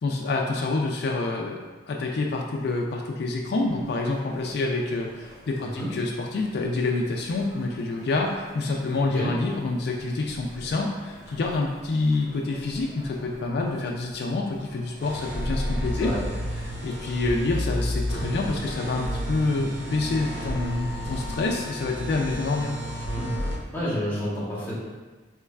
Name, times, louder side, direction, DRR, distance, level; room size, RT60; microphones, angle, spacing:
voice 1, 0.0-1.6 1.9-16.1 16.6-22.7, left 3 dB, 55° left, 0 dB, 0.3 m, -27 dB
sound 1, 3.6-18.8, equal, 20° right, 0.7 m, -48 dB
sound 2, 15.0-23.6, equal, 75° right, 0.7 m, -31 dB
voice 2, 23.7-24.8, equal, 10° left, -9 dB, 1.0 m, -29 dB
4.5 x 3.0 x 2.3 m, 1.3 s
head